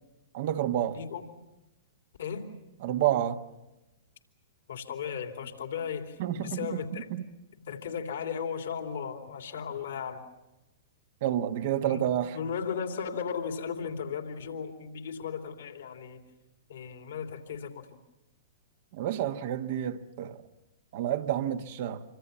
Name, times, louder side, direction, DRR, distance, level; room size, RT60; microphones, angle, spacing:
voice 1, 0.3-1.0 2.8-3.4 6.2-6.7 6.9-7.2 11.2-12.4 18.9-20.4 20.9-22.0, right 11 dB, 50° right, 1.4 m, -29 dB
voice 2, 0.9-1.2 2.2-2.5 4.7-7.1 7.7-10.2 11.9-12.0 12.3-16.2 16.7-17.8, left 7 dB, 65° left, 3.1 m, -36 dB
27.0 x 25.0 x 7.0 m
figure-of-eight pair, 105°, 0 cm